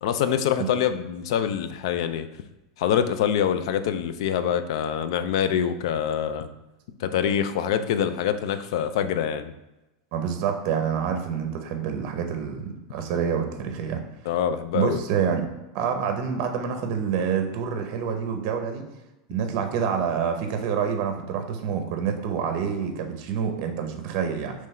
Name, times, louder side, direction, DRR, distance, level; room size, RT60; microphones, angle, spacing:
voice 1, 0.0-2.3 2.8-6.5 7.0-9.5 14.3-15.0, left 9 dB, 70° left, 10 dB, 0.4 m, -25 dB
voice 2, 10.1-14.0 14.7-15.5 15.7-18.8 19.3-24.5, right 7 dB, 50° right, 5 dB, 0.7 m, -27 dB
3.7 x 3.1 x 4.2 m, 1.0 s
supercardioid pair, 150°, 3 cm